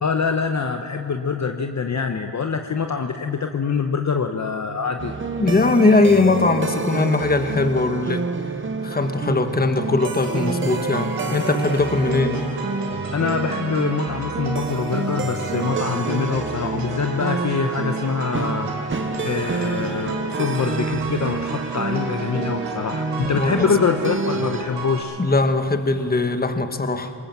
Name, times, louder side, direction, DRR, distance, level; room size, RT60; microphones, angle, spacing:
voice 1, 0.0-5.1 13.1-18.7 19.2-25.2, left 5 dB, 40° left, 5 dB, 1.0 m, -24 dB
sound 1, 5.0-24.6, right 4 dB, 30° right, 0.9 m, -28 dB
voice 2, 5.4-8.3 8.8-12.5 23.3-23.7 25.2-27.1, left 3 dB, 20° left, 8 dB, 1.4 m, -20 dB
sound 2, 10.0-25.0, right 2 dB, 80° right, 3.3 m, -33 dB
20.5 x 19.0 x 7.5 m, 2.7 s
cardioid pair, 65°, 42 cm